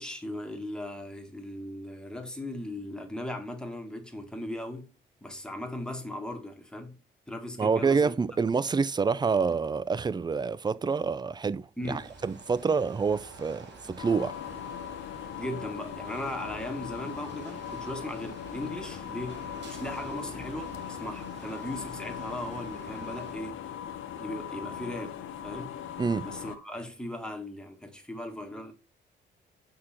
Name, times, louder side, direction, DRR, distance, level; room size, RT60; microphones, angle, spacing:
voice 1, 0.0-4.9 5.2-7.0 7.3-8.1 11.8-12.1 15.4-23.6 24.2-25.8 26.2-28.7, left 1 dB, 5° left, 2.0 m, -38 dB
voice 2, 7.6-14.4 26.0-26.3, right 5 dB, 20° right, 0.5 m, -27 dB
sound 1, 11.8-23.3, right 3 dB, 65° right, 2.5 m, -48 dB
sound 2, 14.0-26.6, left 9 dB, 85° left, 1.0 m, -39 dB
6.6 x 5.7 x 4.3 m
cardioid pair, 90°, 20 cm